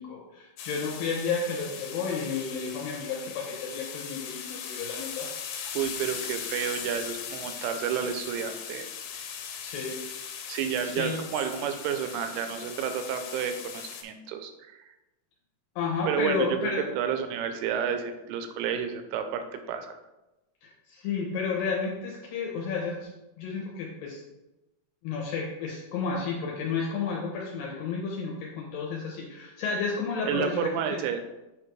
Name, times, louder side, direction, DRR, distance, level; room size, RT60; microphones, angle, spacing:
voice 1, 0.0-5.3 9.6-10.0 10.4-11.2 15.8-16.8 20.6-23.1 23.4-24.2 25.0-30.6 30.9-31.0, left 5 dB, 75° left, -2 dB, 2.4 m, -32 dB
sound 1, 0.6-14.0, left 8 dB, 90° left, 2.7 m, -39 dB
voice 2, 5.8-8.9 10.5-14.8 16.1-16.7 17.0-20.0 30.3-31.2, right 8 dB, 90° right, 7 dB, 2.6 m, -30 dB
7.4 x 3.3 x 4.6 m, 1.0 s
omnidirectional pair, 4.5 m